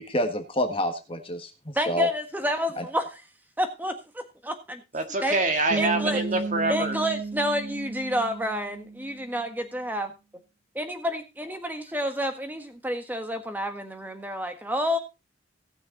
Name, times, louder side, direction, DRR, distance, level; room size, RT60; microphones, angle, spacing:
voice 1, 0.0-2.1, equal, 25° left, 6 dB, 1.5 m, -28 dB
voice 2, 1.7-3.2 3.6-4.8 5.2-5.4 5.8-6.2 6.7-10.1 10.7-15.0, equal, 10° right, 7 dB, 1.5 m, -29 dB
voice 3, 4.9-6.9, right 2 dB, 35° right, 6 dB, 1.8 m, -26 dB
Bass guitar, 5.7-9.4, right 4 dB, 60° right, 0.8 m, -33 dB
18.0 x 6.5 x 3.9 m, 0.28 s
head